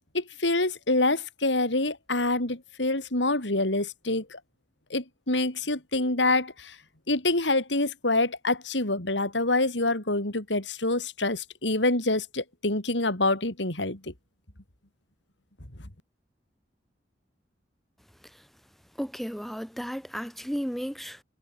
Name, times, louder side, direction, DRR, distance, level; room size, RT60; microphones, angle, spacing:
voice 1, 0.1-4.4 4.9-6.7 7.1-14.1, left 2 dB, 85° left, 4.7 m, -26 dB
voice 2, 19.0-21.2, equal, ahead, 3.7 m, -34 dB
head